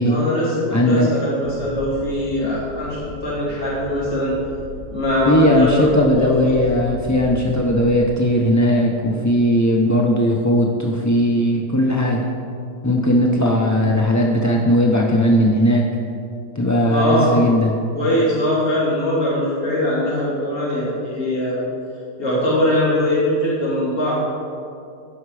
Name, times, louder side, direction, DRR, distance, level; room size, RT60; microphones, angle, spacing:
voice 1, 0.0-4.4 4.9-6.5 16.9-17.3 17.9-21.6 22.2-24.2, left 1 dB, 50° left, -9 dB, 3.2 m, -21 dB
voice 2, 0.7-1.1 5.3-12.2 12.8-15.8 16.5-17.7, equal, 25° left, -2 dB, 0.4 m, -17 dB
sound 1, 1.4-8.0, left 2 dB, 85° left, 2.5 m, -36 dB
15.5 x 6.0 x 4.9 m, 2.5 s
omnidirectional pair, 1.8 m